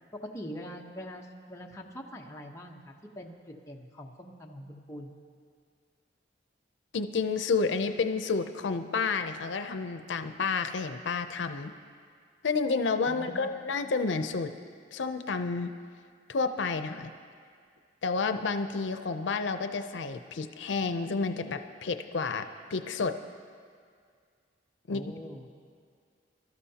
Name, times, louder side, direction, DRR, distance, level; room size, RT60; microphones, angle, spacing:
voice 1, 0.1-5.1 13.1-13.6 24.9-25.5, equal, 15° left, 0 dB, 0.9 m, -43 dB
voice 2, 6.9-11.7 12.4-14.5 14.9-15.7 16.3-17.1 18.0-22.5 22.7-23.1 24.9-25.0, left 4 dB, 90° left, 8 dB, 0.6 m, -30 dB
23.5 x 13.0 x 2.8 m, 2.1 s
head